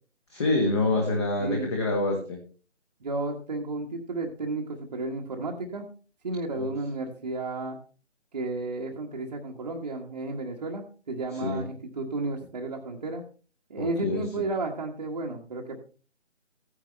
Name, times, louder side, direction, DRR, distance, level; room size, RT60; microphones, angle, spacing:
voice 1, 0.3-2.4 6.6-6.7 11.4-11.6 13.8-14.2, left 2 dB, 20° left, 1 dB, 1.6 m, -26 dB
voice 2, 1.4-1.7 3.0-5.8 6.2-7.8 8.3-13.2 13.7-15.8, right 2 dB, 35° right, -1 dB, 1.4 m, -32 dB
15.0 x 9.8 x 3.3 m, 0.39 s
figure-of-eight pair, 155°, 37 cm